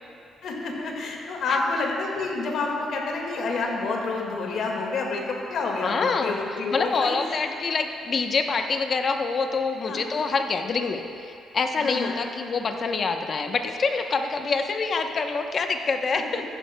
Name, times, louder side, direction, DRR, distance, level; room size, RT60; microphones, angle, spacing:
voice 1, 0.4-7.2 9.9-10.0 11.8-12.2 16.1-16.2, left 3 dB, 70° left, 0 dB, 1.8 m, -28 dB
voice 2, 5.8-6.4 6.7-16.4, left 4 dB, 45° left, 5 dB, 0.8 m, -26 dB
14.5 x 11.5 x 2.2 m, 2.5 s
cardioid pair, 90°, 0 cm